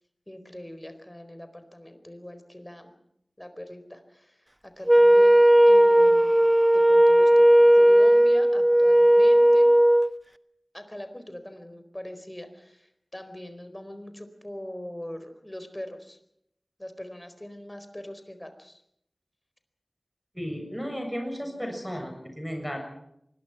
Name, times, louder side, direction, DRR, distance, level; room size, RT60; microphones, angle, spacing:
voice 1, 0.3-2.9 3.4-6.4 6.7-9.7 10.7-16.2 16.8-18.8 21.3-21.7, left 1 dB, 20° left, 9 dB, 4.4 m, -42 dB
Wind instrument woodwind instrument, 4.9-10.1, right 1 dB, 20° right, 1.2 m, -16 dB
voice 2, 20.3-22.8, equal, ahead, 3 dB, 7.2 m, -34 dB
25.0 x 21.5 x 6.0 m, 0.74 s
wide cardioid pair, 50°, 0 cm